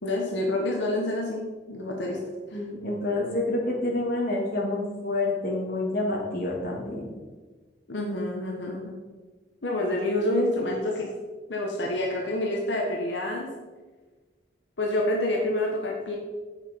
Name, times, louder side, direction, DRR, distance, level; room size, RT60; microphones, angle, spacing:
voice 1, 0.0-2.2 2.5-2.6 7.9-8.9 9.6-11.1 11.5-13.5 14.8-16.2, left 1 dB, 90° left, -1 dB, 1.4 m, -28 dB
voice 2, 2.5-7.1, left 2 dB, 55° left, -3 dB, 2.6 m, -28 dB
8.1 x 7.3 x 5.4 m, 1.3 s
head